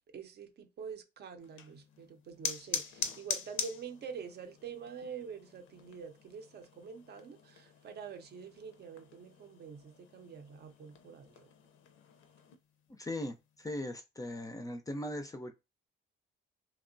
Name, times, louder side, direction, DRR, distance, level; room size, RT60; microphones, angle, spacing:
voice 1, 0.1-11.4, right 6 dB, 55° right, 0.6 m, -46 dB
sound 1, 1.4-12.6, left 7 dB, 90° left, 0.5 m, -44 dB
voice 2, 13.0-15.5, left 1 dB, 15° left, 0.4 m, -39 dB
2.8 x 2.1 x 2.5 m
cardioid pair, 90°, 20 cm